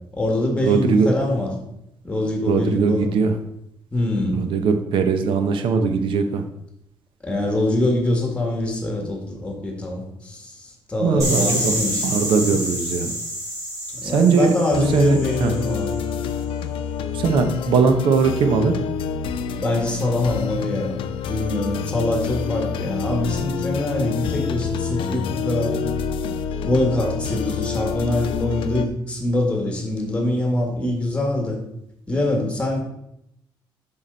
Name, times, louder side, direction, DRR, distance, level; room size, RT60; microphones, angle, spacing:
voice 1, 0.1-1.5 2.0-3.1 3.9-4.4 7.2-12.1 12.5-12.6 13.9-15.9 19.6-25.8 26.7-31.6 32.1-32.8, left 1 dB, 15° left, 1 dB, 1.8 m, -24 dB
voice 2, 0.6-1.1 2.5-3.3 4.3-6.4 11.0-11.7 12.0-13.1 14.0-14.5 14.9-15.5 17.1-18.7, right 5 dB, 80° right, 7 dB, 0.8 m, -20 dB
sound 1, 11.2-16.0, equal, 40° right, 3.2 m, -28 dB
sound 2, 14.7-28.9, left 6 dB, 85° left, 0.6 m, -27 dB
7.5 x 5.8 x 4.0 m, 0.79 s
cardioid pair, 155°, 9 cm